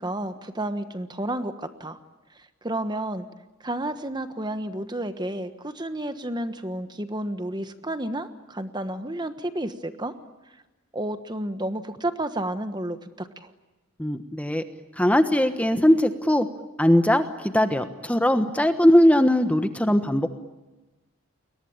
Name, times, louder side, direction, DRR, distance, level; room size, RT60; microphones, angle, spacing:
voice 1, 0.0-2.0 2.3-3.2 3.6-10.1 10.9-13.5, right 1 dB, 20° right, 9 dB, 1.3 m, -31 dB
voice 2, 14.0-14.6 15.0-16.5 16.8-20.3, left 1 dB, 5° left, 8 dB, 1.2 m, -20 dB
30.0 x 22.5 x 8.8 m, 1.1 s
head